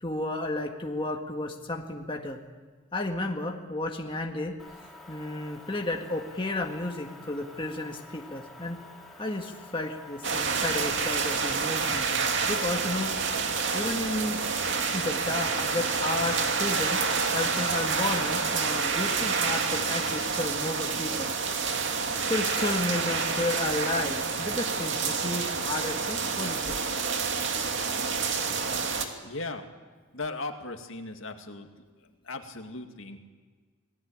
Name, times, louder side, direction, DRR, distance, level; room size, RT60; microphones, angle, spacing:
voice 1, 0.0-2.4 2.9-4.6 5.1-8.8 9.2-12.1 12.5-13.1 13.7-14.4 14.9-17.0 17.3-21.3 22.3-26.7, left 2 dB, 25° left, 2 dB, 1.8 m, -32 dB
Motor vehicle (road) / Engine, 4.6-10.9, left 2 dB, ahead, 4.7 m, -49 dB
sound 1, 10.2-29.1, right 5 dB, 55° right, 2.6 m, -28 dB
voice 2, 29.2-29.7 30.1-31.7 32.0-33.2, left 3 dB, 60° left, 5 dB, 2.4 m, -37 dB
28.0 x 20.0 x 8.9 m, 1.4 s
head